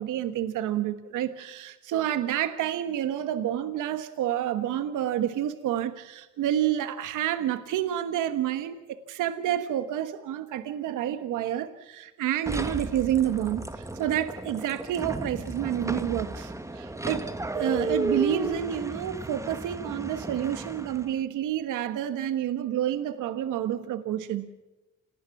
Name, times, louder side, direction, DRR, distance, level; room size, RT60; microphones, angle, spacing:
voice 1, 0.0-17.3 17.5-24.5, right 11 dB, 90° right, 10 dB, 1.3 m, -29 dB
sound 1, 12.5-21.2, right 2 dB, 10° right, 1.8 m, -34 dB
28.5 x 19.0 x 6.0 m, 1.1 s
cardioid pair, 90°, 30 cm